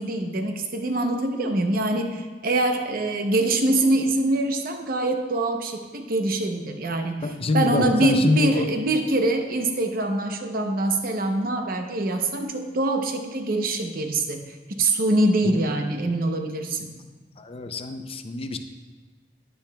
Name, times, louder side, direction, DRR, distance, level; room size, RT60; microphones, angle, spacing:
voice 1, 0.0-17.0, right 2 dB, 55° right, 5 dB, 0.7 m, -24 dB
voice 2, 7.2-8.6 17.4-18.6, left 2 dB, 35° left, 7 dB, 0.5 m, -25 dB
9.9 x 8.7 x 2.3 m, 1.4 s
head